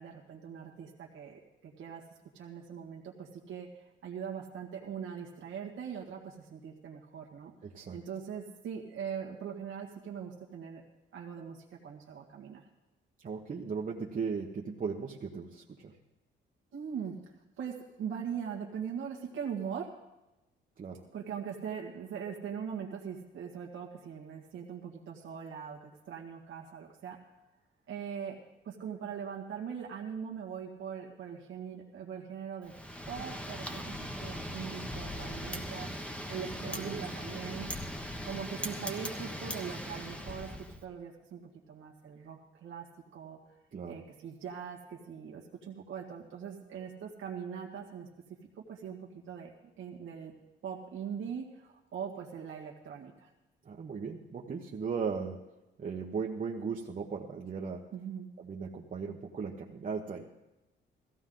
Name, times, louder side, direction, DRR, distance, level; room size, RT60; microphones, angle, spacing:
voice 1, 0.0-2.0 2.3-7.5 7.9-10.8 11.1-12.7 16.7-17.1 17.6-19.9 21.1-27.2 27.9-32.7 33.1-37.7 38.3-42.9 43.1-43.4 43.9-48.1 48.6-49.5 49.8-50.3 50.6-53.3 57.9-58.3, right 7 dB, 75° right, -1 dB, 1.8 m, -41 dB
voice 2, 7.6-8.0 13.2-15.9 20.8-21.0 36.6-37.1 43.7-44.0 53.7-55.4 55.8-57.8 58.4-60.2, right 5 dB, 45° right, -1 dB, 1.2 m, -37 dB
Wind, 32.7-40.8, equal, 5° left, 1.3 m, -39 dB
16.5 x 15.0 x 3.9 m, 0.99 s
cardioid pair, 90°, 20 cm